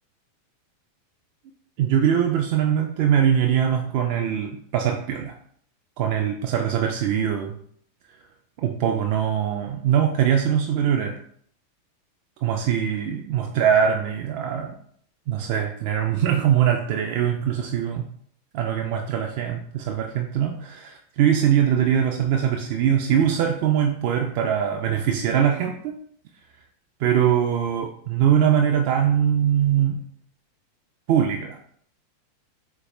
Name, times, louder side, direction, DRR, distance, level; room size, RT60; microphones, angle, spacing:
voice 1, 1.8-5.3 6.0-7.6 8.6-11.1 12.4-14.8 15.3-18.1 18.5-25.9 27.0-30.0 31.1-31.6, right 9 dB, 50° right, 3 dB, 0.3 m, -22 dB
4.0 x 2.0 x 3.1 m, 0.64 s
figure-of-eight pair, 90°, 0 cm